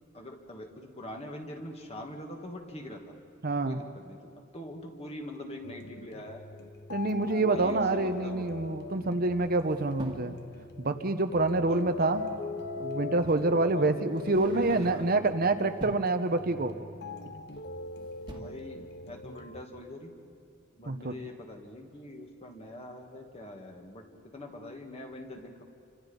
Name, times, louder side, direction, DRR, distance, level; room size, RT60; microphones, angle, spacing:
voice 1, 0.1-3.2 3.6-6.4 7.3-8.6 9.0-9.3 11.5-12.2 13.6-14.0 14.5-15.3 18.3-20.2 20.7-25.6, left 1 dB, 30° left, 2 dB, 2.4 m, -44 dB
voice 2, 3.4-3.8 6.9-10.3 10.8-12.2 12.8-16.7 20.9-21.1, right 2 dB, 50° right, 8 dB, 1.0 m, -27 dB
sound 1, 5.6-19.6, left 4 dB, 55° left, 1.1 m, -41 dB
sound 2, 9.4-10.4 12.1-12.2 13.3-13.5 14.1-15.3 15.7-16.2 17.5-17.9 18.1-18.4, equal, 20° right, 1.9 m, -44 dB
29.0 x 25.5 x 5.4 m, 2.5 s
head